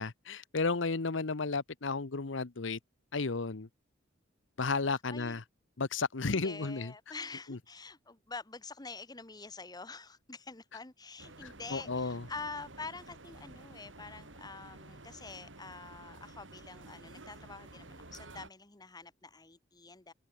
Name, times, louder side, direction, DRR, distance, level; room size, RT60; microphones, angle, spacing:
voice 1, 0.0-2.8 3.1-3.7 4.6-5.4 5.8-6.9 7.5-7.6 11.4-12.3, left 4 dB, 70° left, 1.0 m, -33 dB
voice 2, 6.2-20.1, left 4 dB, 20° left, 1.3 m, -46 dB
sound 1, 11.2-18.5, right 2 dB, 70° right, 3.9 m, -52 dB
open air
head